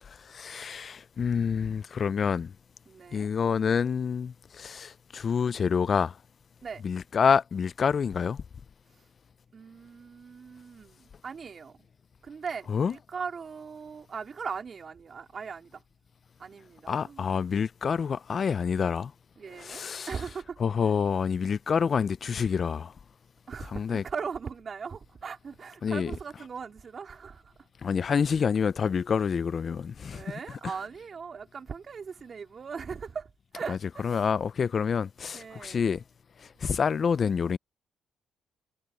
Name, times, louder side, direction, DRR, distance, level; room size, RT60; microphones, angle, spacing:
voice 1, 0.0-2.5 3.1-6.2 6.8-8.4 12.7-12.9 16.9-19.1 19.5-20.1 20.6-22.9 23.7-24.0 25.8-26.1 27.8-30.2 30.5-30.6 33.7-33.8 34.0-36.0 36.4-37.6, left 6 dB, 45° left, 0.3 m, -27 dB
voice 2, 2.9-3.3 6.6-6.8 9.5-11.8 12.2-15.8 16.4-17.3 19.4-20.6 23.5-27.5 28.1-28.2 30.1-34.2 35.3-35.8, right 6 dB, 45° right, 3.8 m, -39 dB
cardioid pair, 90°, 0 cm